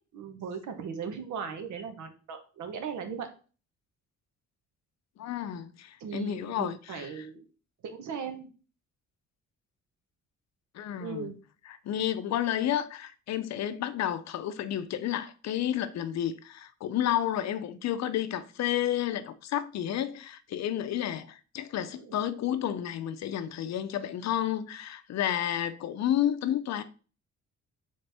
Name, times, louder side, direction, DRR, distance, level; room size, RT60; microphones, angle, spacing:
voice 1, 0.1-3.3 6.0-7.4 7.8-8.5 11.0-11.3 21.9-22.2, right 6 dB, 75° right, 0.9 m, -38 dB
voice 2, 5.2-7.2 10.7-11.3 11.7-26.8, left 11 dB, 60° left, 0.5 m, -31 dB
4.2 x 3.2 x 3.3 m
cardioid pair, 90°, 30 cm